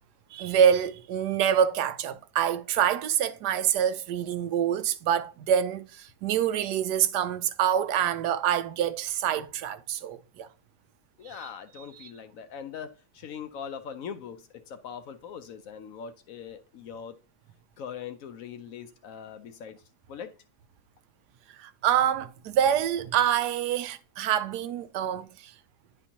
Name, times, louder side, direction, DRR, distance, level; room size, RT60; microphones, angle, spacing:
voice 1, 0.3-10.5 11.3-11.4 12.0-12.1 21.6-25.3, right 9 dB, 85° right, 1.2 m, -26 dB
voice 2, 11.2-17.2 17.8-19.8 20.1-20.4, left 7 dB, 65° left, 0.9 m, -41 dB
9.8 x 4.4 x 2.8 m
omnidirectional pair, 1.7 m